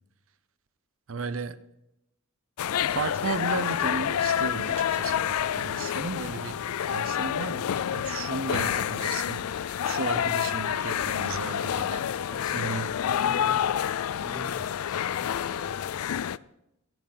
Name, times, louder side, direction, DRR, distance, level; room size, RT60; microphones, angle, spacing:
voice 1, 1.1-1.6 2.9-13.1, right 4 dB, 65° right, 14 dB, 0.7 m, -35 dB
sound 1, 2.6-16.4, left 9 dB, 80° left, 0.4 m, -28 dB
voice 2, 12.3-16.2, left 1 dB, 20° left, 8 dB, 1.0 m, -46 dB
13.5 x 10.5 x 5.7 m, 0.85 s
head